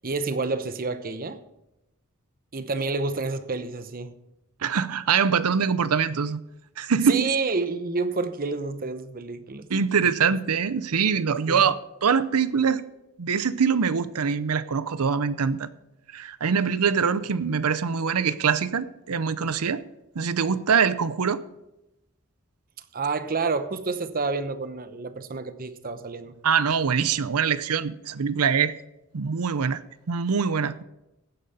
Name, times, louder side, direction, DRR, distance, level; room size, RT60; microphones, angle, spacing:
voice 1, 0.0-1.4 2.5-4.2 7.1-9.7 11.5-11.7 22.9-26.3, right 4 dB, 40° right, 11 dB, 0.8 m, -29 dB
voice 2, 4.6-6.4 6.8-7.3 9.7-12.8 13.2-15.7 16.1-19.8 20.1-21.4 26.4-28.7 29.1-30.8, right 6 dB, 85° right, 15 dB, 0.7 m, -24 dB
15.5 x 9.2 x 4.2 m, 0.91 s
head